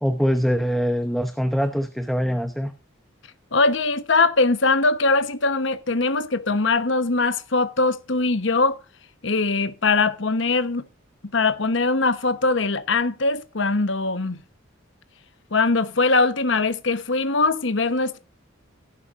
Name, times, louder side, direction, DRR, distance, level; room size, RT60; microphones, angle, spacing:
voice 1, 0.0-2.7, equal, ahead, 0.8 m, -23 dB
voice 2, 3.5-8.8 9.2-10.8 11.3-14.4 15.5-18.2, left 3 dB, 65° left, 1.1 m, -21 dB
16.0 x 11.5 x 2.6 m
head